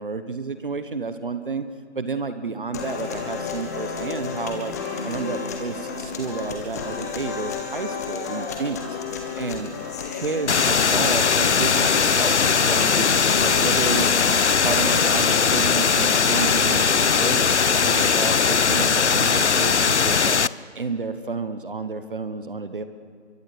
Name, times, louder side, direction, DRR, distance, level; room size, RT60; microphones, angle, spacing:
voice 1, 0.0-1.7 1.9-4.7 5.0-8.8 9.4-9.7 10.1-14.1 14.6-17.6 17.8-20.4 20.7-22.8, right 4 dB, 45° right, 10 dB, 1.2 m, -30 dB
sound 1, 2.7-18.7, left 5 dB, 15° left, 1.4 m, -32 dB
sound 2, 10.5-20.5, left 6 dB, 70° left, 0.7 m, -20 dB
25.0 x 23.5 x 6.5 m, 2.2 s
figure-of-eight pair, 160°, 35 cm